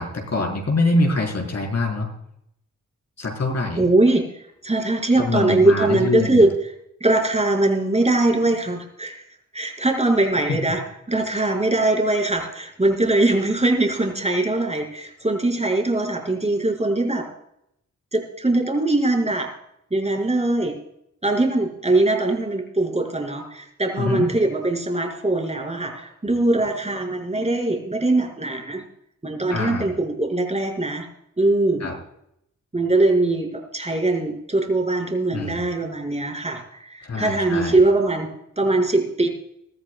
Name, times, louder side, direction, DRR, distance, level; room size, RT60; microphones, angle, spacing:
voice 1, 0.0-2.1 3.2-3.8 5.2-6.4 10.5-10.6 24.0-24.3 29.5-29.9 31.8-31.9 35.3-35.6 37.0-37.8, left 2 dB, 55° left, 0 dB, 4.4 m, -24 dB
voice 2, 3.8-4.2 4.6-6.5 7.0-9.1 9.5-10.8 11.1-17.3 18.1-19.5 19.9-20.7 21.2-28.8 29.2-31.0 31.4-31.9 32.7-39.3, right 2 dB, 20° right, 1 dB, 5.1 m, -21 dB
22.0 x 14.0 x 2.3 m, 0.77 s
cardioid pair, 70°, 31 cm